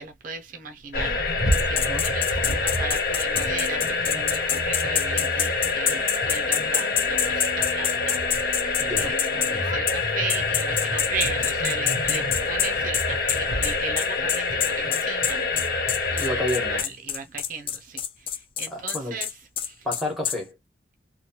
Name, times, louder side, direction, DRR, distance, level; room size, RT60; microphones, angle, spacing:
voice 1, 0.0-8.2 8.9-15.4 16.1-16.4 16.7-19.9, right 5 dB, 45° right, 0.5 m, -36 dB
sound 1, 0.9-16.8, left 3 dB, 50° left, 0.8 m, -26 dB
sound 2, 1.5-9.5 9.9-10.0 10.3-20.4, left 8 dB, 30° left, 0.3 m, -27 dB
voice 2, 8.8-9.2 16.1-16.9 18.7-19.2 19.8-20.6, left 1 dB, ahead, 1.1 m, -30 dB
3.0 x 2.2 x 2.7 m
head